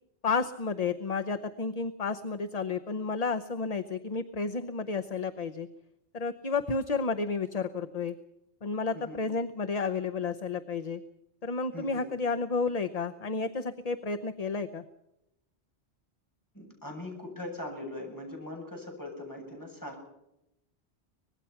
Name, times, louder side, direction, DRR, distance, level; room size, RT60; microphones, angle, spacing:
voice 1, 0.2-5.7 6.1-8.1 8.6-11.0 11.4-14.8, left 4 dB, 40° left, 8 dB, 0.9 m, -31 dB
voice 2, 11.7-12.1 16.5-20.0, left 1 dB, 15° left, 1 dB, 7.8 m, -41 dB
25.0 x 20.0 x 5.8 m, 0.87 s
omnidirectional pair, 1.1 m